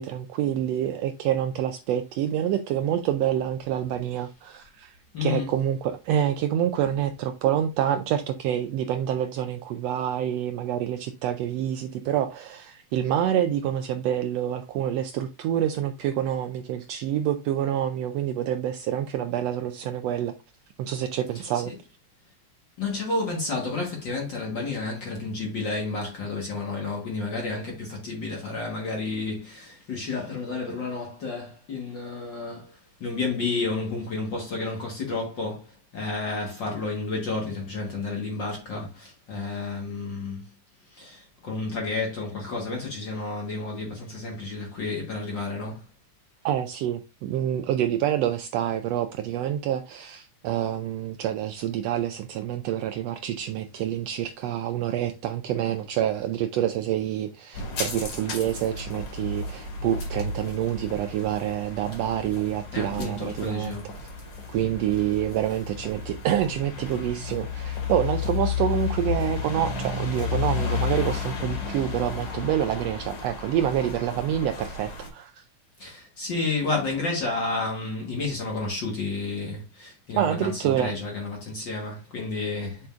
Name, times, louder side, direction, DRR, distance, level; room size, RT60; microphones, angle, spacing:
voice 1, 0.0-20.3 20.8-21.7 46.4-63.8 64.5-75.4 80.1-80.9, right 10 dB, 80° right, 1.5 m, -27 dB
voice 2, 5.1-5.5 21.5-21.6 22.8-40.5 40.9-45.9 62.7-63.9 75.8-82.9, left 3 dB, 45° left, 1.7 m, -31 dB
sound 1, 57.5-75.1, left 5 dB, 90° left, 3.7 m, -32 dB
7.0 x 6.2 x 2.5 m
omnidirectional pair, 3.3 m